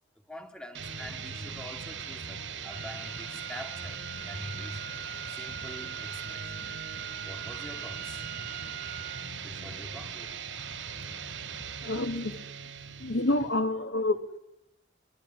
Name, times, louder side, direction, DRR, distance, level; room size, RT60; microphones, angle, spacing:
voice 1, 0.3-4.0 4.2-4.9 5.3-6.5 7.2-8.2 9.4-10.3, equal, 5° left, 2.4 m, -45 dB
sound 1, 0.7-13.6, right 6 dB, 80° right, 4.0 m, -40 dB
Wind instrument woodwind instrument, 2.7-9.3, right 8 dB, 55° right, 4.5 m, -43 dB
voice 2, 11.8-12.4 13.0-14.4, left 2 dB, 80° left, 2.2 m, -28 dB
23.5 x 23.5 x 10.0 m
head